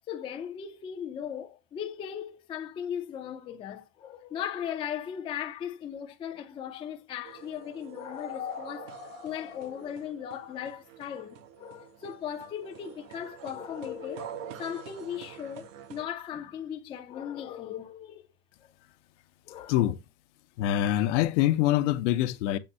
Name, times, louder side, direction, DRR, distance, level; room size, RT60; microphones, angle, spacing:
voice 1, 0.1-18.3 19.5-19.7, left 9 dB, 15° left, 0.4 m, -37 dB
sound 1, 7.2-16.0, right 9 dB, 90° right, 1.2 m, -47 dB
voice 2, 19.7-20.0 20.6-22.6, left 13 dB, 65° left, 0.8 m, -25 dB
7.3 x 2.6 x 5.4 m
supercardioid pair, 165°, 38 cm